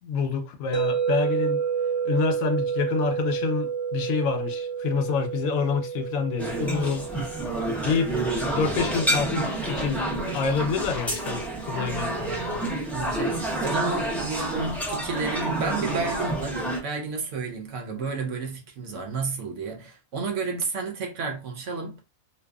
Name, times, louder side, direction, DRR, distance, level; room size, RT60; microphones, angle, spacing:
voice 1, 0.0-1.6 2.0-7.1 7.8-8.2 8.6-10.0 10.3-12.3, left 5 dB, 75° left, 1.0 m, -27 dB
sound 1, 0.7-10.8, right 7 dB, 40° right, 0.6 m, -30 dB
sound 2, 6.4-16.8, right 1 dB, ahead, 0.3 m, -29 dB
voice 2, 12.2-22.1, right 4 dB, 65° right, 1.0 m, -32 dB
2.7 x 2.3 x 2.2 m
omnidirectional pair, 1.5 m